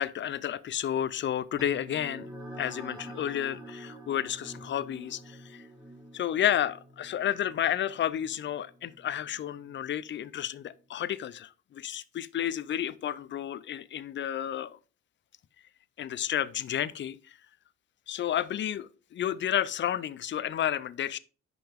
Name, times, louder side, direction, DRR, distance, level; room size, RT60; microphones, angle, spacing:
voice 1, 0.0-2.3 2.6-5.6 6.1-14.8 16.0-17.4 18.1-21.2, left 10 dB, 40° left, 0.4 m, -31 dB
sound 1, 1.6-10.4, right 1 dB, 10° right, 1.4 m, -47 dB
5.8 x 5.3 x 3.5 m
cardioid pair, 90°, 30 cm